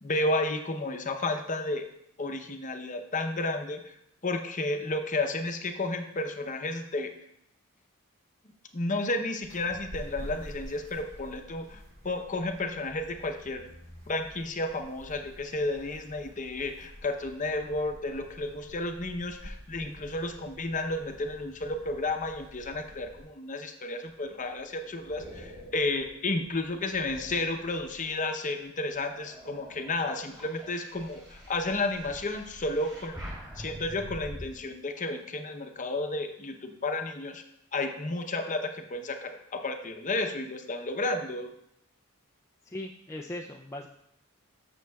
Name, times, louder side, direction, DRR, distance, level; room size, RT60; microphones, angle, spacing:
voice 1, 0.0-1.8 2.2-3.9 4.2-7.1 8.7-13.6 14.1-33.2 33.6-37.4 37.7-41.5, left 2 dB, 35° left, 6 dB, 0.7 m, -32 dB
sound 1, 9.4-23.2, equal, 45° right, 3.5 m, -48 dB
sound 2, 24.1-28.3 28.8-34.5, equal, 20° right, 2.8 m, -46 dB
voice 2, 42.6-43.9, left 1 dB, 15° left, 0 dB, 0.4 m, -39 dB
13.5 x 6.3 x 2.3 m, 0.76 s
head